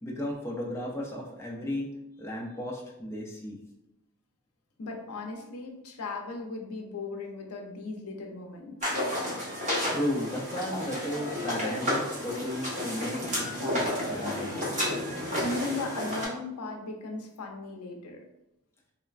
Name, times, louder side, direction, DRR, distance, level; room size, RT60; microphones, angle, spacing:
voice 1, 0.0-1.9 2.2-3.6 9.9-13.7 14.1-14.6, left 1 dB, 10° left, -3 dB, 0.4 m, -34 dB
voice 2, 4.8-8.9 15.4-18.2, left 3 dB, 75° left, 2 dB, 0.5 m, -37 dB
sound 1, 8.8-16.3, left 1 dB, 35° right, 0.8 m, -31 dB
3.2 x 2.0 x 2.3 m, 0.90 s
head